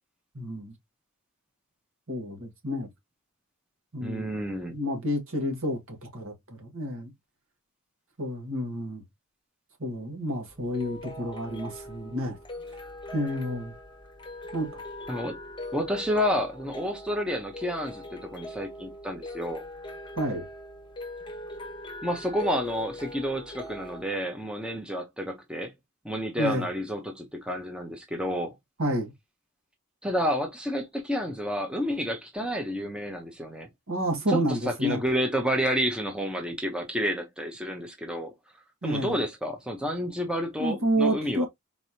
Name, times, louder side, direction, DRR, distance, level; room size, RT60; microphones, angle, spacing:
voice 1, 0.3-0.7 2.1-2.9 3.9-4.3 4.7-7.1 8.2-9.0 9.8-12.4 13.1-13.7 14.5-14.8 20.2-20.4 26.4-26.7 28.8-29.1 33.9-35.0 38.8-39.2 40.6-41.5, equal, 65° right, 1.8 m, -29 dB
voice 2, 4.0-4.8 15.1-15.3 15.7-19.6 22.0-25.7 26.0-28.5 30.0-33.7 34.3-38.3 38.8-41.4, equal, 5° right, 0.8 m, -30 dB
sound 1, 10.5-24.0, left 1 dB, 20° left, 0.9 m, -41 dB
4.2 x 3.3 x 2.7 m
head